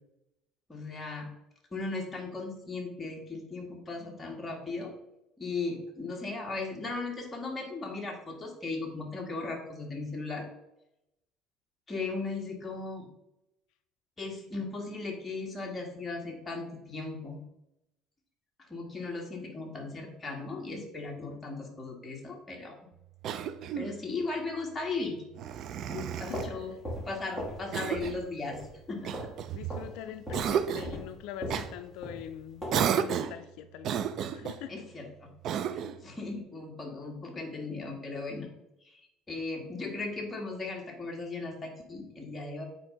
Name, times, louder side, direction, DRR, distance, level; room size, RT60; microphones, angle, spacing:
voice 1, 0.7-1.3 1.7-4.9 5.4-10.5 11.9-13.1 14.2-17.4 18.6-22.8 23.7-25.2 25.9-26.7 27.1-28.6 28.9-29.3 34.7-35.3 35.7-38.5 38.9-39.0 39.3-42.7, left 3 dB, 15° left, 0 dB, 1.8 m, -37 dB
Cough, 23.2-24.0 25.3-26.5 27.7-28.2 29.0-29.9 30.3-31.0 31.5-31.7 32.7-33.4 33.8-34.6 35.4-36.0, right 8 dB, 55° right, 0.5 m, -32 dB
sound 1, 26.1-27.7 27.9-28.2 28.5-29.4 29.7-29.9 30.3-33.0, equal, 10° right, 2.7 m, -38 dB
voice 2, 26.3-26.7 29.5-34.0 34.3-34.9, left 11 dB, 75° left, 10 dB, 0.4 m, -43 dB
8.4 x 4.5 x 3.8 m, 0.87 s
cardioid pair, 125°, 0 cm